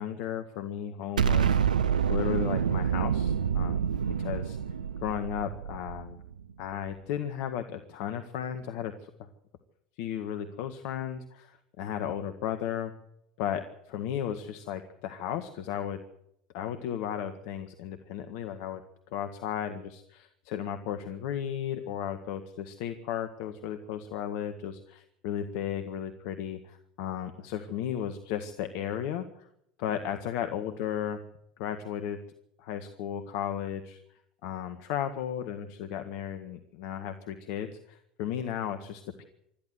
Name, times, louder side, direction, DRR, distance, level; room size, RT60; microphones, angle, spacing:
voice 1, 0.0-1.6 2.1-3.9 4.2-4.6 5.0-6.2 6.6-9.3 10.0-12.9 13.4-16.0 16.5-18.8 19.1-29.5 29.8-31.2 31.6-32.2 32.6-39.2, left 9 dB, 60° left, 8 dB, 1.7 m, -35 dB
Explosion, 1.2-6.3, right 7 dB, 80° right, 0.8 m, -27 dB
26.0 x 13.5 x 8.0 m, 0.76 s
figure-of-eight pair, 75°, 4 cm